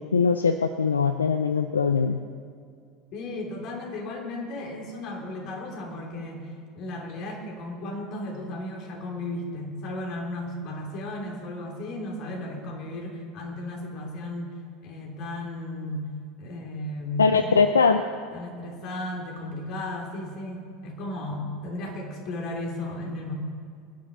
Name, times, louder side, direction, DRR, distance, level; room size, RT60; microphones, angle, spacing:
voice 1, 0.0-2.2 17.2-18.0, left 5 dB, 85° left, 9 dB, 0.5 m, -21 dB
voice 2, 3.1-6.5 6.7-14.5 14.8-16.1 16.4-17.6 18.3-23.3, left 1 dB, 50° left, 0 dB, 3.2 m, -35 dB
24.0 x 10.5 x 4.0 m, 2.2 s
hypercardioid pair, 80°, 0 cm